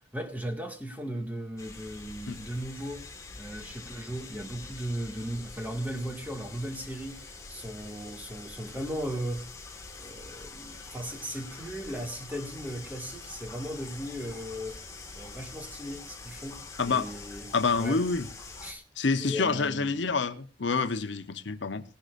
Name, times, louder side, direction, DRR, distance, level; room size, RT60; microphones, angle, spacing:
voice 1, 0.1-3.1 3.4-9.5 10.0-14.8 15.1-18.0 18.6-18.8 19.2-20.1, equal, 10° right, 1.9 m, -37 dB
sound 1, 1.6-18.7, left 3 dB, 15° left, 1.8 m, -45 dB
voice 2, 16.8-17.1 17.5-18.3 19.0-21.8, left 4 dB, 75° left, 0.8 m, -27 dB
20.0 x 11.5 x 2.5 m
head